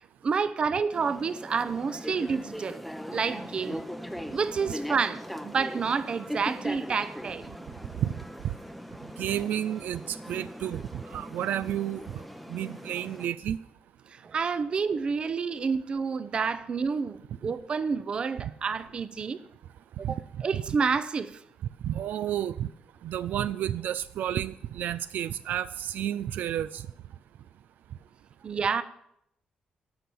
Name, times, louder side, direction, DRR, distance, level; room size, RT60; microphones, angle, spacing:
voice 1, 0.2-2.8 3.1-3.8 4.3-7.4 14.1-19.4 20.0-21.3 28.4-28.8, right 5 dB, 35° right, 0.7 m, -29 dB
sound 1, 0.9-13.3, equal, ahead, 0.7 m, -40 dB
voice 2, 9.2-13.6 20.0-20.6 21.8-22.7 23.0-26.9, right 11 dB, 75° right, 0.4 m, -31 dB
12.5 x 6.0 x 8.5 m
cardioid pair, 155°, 3 cm